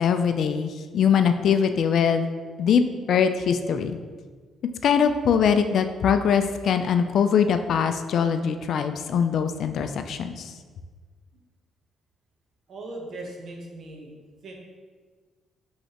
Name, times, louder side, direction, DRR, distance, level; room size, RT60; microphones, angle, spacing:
voice 1, 0.0-2.3 2.6-2.8 3.1-4.0 4.8-10.5, left 7 dB, 65° left, 8 dB, 0.3 m, -22 dB
voice 2, 12.7-14.1 14.4-14.5, right 2 dB, 60° right, 1 dB, 0.9 m, -38 dB
5.5 x 3.2 x 2.9 m, 1.5 s
cardioid pair, 90°, 0 cm